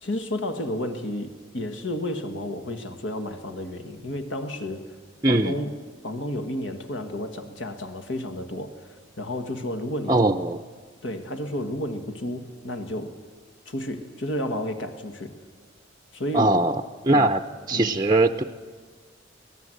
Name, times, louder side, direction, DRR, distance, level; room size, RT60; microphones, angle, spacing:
voice 1, 0.0-4.9 5.3-5.8 6.0-8.9 9.2-10.3 11.0-13.2 13.7-15.4 16.1-16.6 17.1-17.3 17.7-18.0, left 1 dB, 70° left, 7 dB, 1.7 m, -31 dB
voice 2, 5.2-5.6 10.1-10.6 16.3-17.4 17.7-18.4, right 2 dB, 20° right, 6 dB, 0.6 m, -21 dB
23.5 x 18.5 x 7.8 m, 1.5 s
head